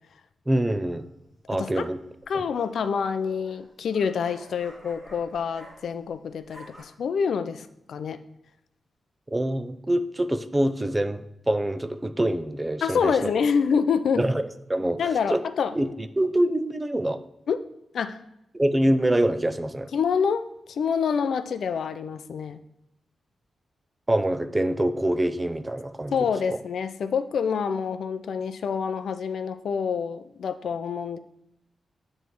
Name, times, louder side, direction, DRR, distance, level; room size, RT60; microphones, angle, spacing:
voice 1, 0.5-1.1 1.5-2.0 2.3-2.5 9.3-11.2 11.5-13.3 14.2-14.4 14.7-15.0 15.3-15.4 15.7-17.2 18.5-19.9 24.1-26.2 26.5-26.6, right 1 dB, 15° right, 11 dB, 0.3 m, -25 dB
sound 1, 0.9-1.3 2.2-6.1 6.3-6.8, equal, 5° left, 2.4 m, -50 dB
voice 2, 1.5-1.9 2.3-8.2 12.8-14.2 15.0-15.8 17.5-17.7 17.9-18.2 19.9-22.6 26.1-31.2, left 6 dB, 75° left, 11 dB, 0.4 m, -27 dB
9.0 x 3.2 x 4.5 m, 0.81 s
wide cardioid pair, 145°, 0 cm